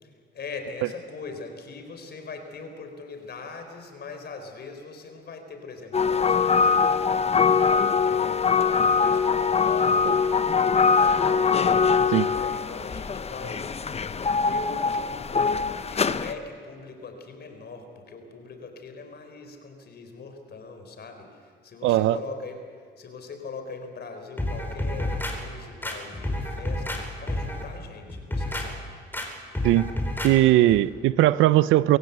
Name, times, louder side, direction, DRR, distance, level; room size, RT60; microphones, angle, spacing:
voice 1, 0.0-7.5 8.0-11.9 12.3-13.7 14.4-22.7 23.0-28.9, left 4 dB, 55° left, 6 dB, 3.9 m, -41 dB
sound 1, 5.9-16.3, left 5 dB, 30° left, 0.9 m, -22 dB
voice 2, 21.8-22.2 29.6-29.9 30.2-32.0, right 15 dB, 90° right, 17 dB, 0.5 m, -19 dB
sound 2, 24.4-25.3 25.8-27.0 27.3-27.6 28.1-28.7 29.1-29.3 29.5-30.3 30.7-30.8, left 1 dB, 10° left, 4.2 m, -29 dB
24.0 x 16.5 x 8.1 m, 2.2 s
cardioid pair, 90°, 20 cm